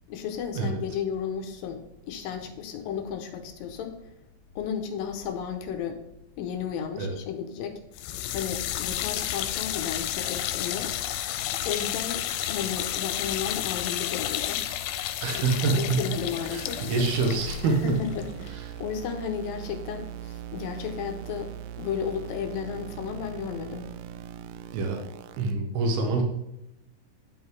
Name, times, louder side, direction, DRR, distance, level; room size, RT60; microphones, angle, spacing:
voice 1, 0.1-3.9 4.6-6.0 6.4-7.8 8.3-10.9 11.7-14.6 15.3-16.8 17.6-23.9, left 7 dB, 75° left, 6 dB, 2.3 m, -33 dB
sound 1, 7.9-19.0, left 12 dB, 90° left, 2.6 m, -31 dB
voice 2, 15.2-16.1 16.5-18.0 18.5-18.7 24.7-25.0 25.4-26.2, right 4 dB, 75° right, 2 dB, 2.9 m, -26 dB
sound 2, 15.6-25.5, right 10 dB, 90° right, 1.9 m, -41 dB
11.0 x 3.9 x 4.7 m, 0.85 s
omnidirectional pair, 4.7 m